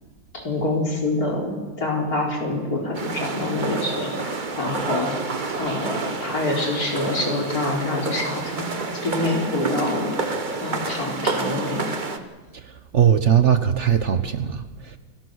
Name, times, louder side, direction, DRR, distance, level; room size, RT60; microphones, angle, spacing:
voice 1, 0.3-5.1 5.6-8.7 9.0-10.2 10.6-12.0, left 2 dB, 65° left, -1 dB, 4.5 m, -26 dB
sound 1, 2.9-12.2, right 3 dB, 30° right, 1.2 m, -29 dB
sound 2, 4.5-11.2, right 3 dB, 75° right, 3.1 m, -39 dB
voice 2, 12.9-15.0, right 8 dB, 50° right, 10 dB, 1.1 m, -19 dB
28.5 x 18.0 x 6.4 m, 1.3 s
omnidirectional pair, 1.7 m